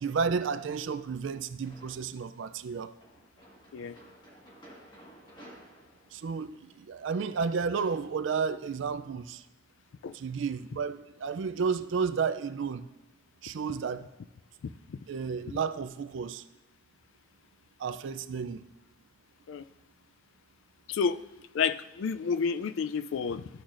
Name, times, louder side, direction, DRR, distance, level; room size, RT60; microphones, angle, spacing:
voice 1, 0.0-2.9 6.1-9.4 10.1-12.9 13.4-14.1 15.1-16.4 17.8-18.7, right 5 dB, 60° right, 12 dB, 0.4 m, -32 dB
sound 1, 1.7-2.3 3.0-8.1, equal, 20° left, 1.5 m, -55 dB
voice 2, 14.6-15.0 15.5-15.6 19.5-19.6 20.9-21.2 21.5-23.5, left 6 dB, 65° left, 13 dB, 0.3 m, -30 dB
13.0 x 6.2 x 2.5 m, 1.1 s
head